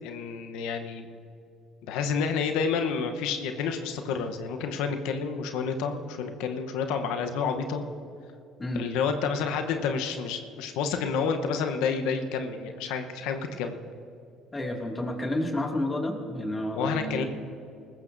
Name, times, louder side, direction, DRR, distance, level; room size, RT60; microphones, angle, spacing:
voice 1, 0.0-1.1 1.8-7.9 8.7-13.8 16.7-17.2, left 5 dB, 80° left, 6 dB, 0.9 m, -29 dB
voice 2, 14.5-17.3, left 1 dB, 25° left, 1 dB, 2.2 m, -30 dB
19.5 x 15.0 x 2.6 m, 2.6 s
supercardioid pair, 80°, 0 cm